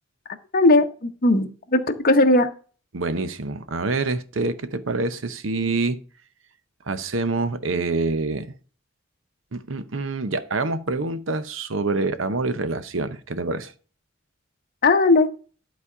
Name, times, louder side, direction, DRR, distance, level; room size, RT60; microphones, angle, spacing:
voice 1, 0.5-2.5 14.8-15.3, left 2 dB, 45° left, 0.8 m, -18 dB
voice 2, 2.9-6.0 6.9-8.5 9.5-13.7, right 3 dB, 75° right, 0.8 m, -26 dB
11.0 x 4.2 x 4.9 m
head